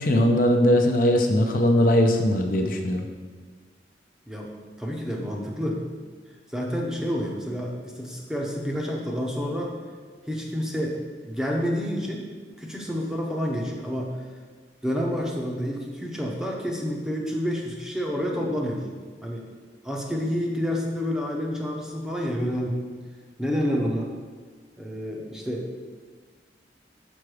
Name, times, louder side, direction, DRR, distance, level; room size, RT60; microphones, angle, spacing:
voice 1, 0.0-3.0, left 1 dB, 45° left, 3 dB, 0.6 m, -20 dB
voice 2, 4.8-5.8 6.5-9.7 10.3-12.3 12.6-14.1 14.8-18.9 19.2-19.4 19.8-22.8 23.4-24.1 24.8-25.7, equal, 5° right, -1 dB, 0.8 m, -29 dB
6.2 x 5.8 x 4.9 m, 1.5 s
head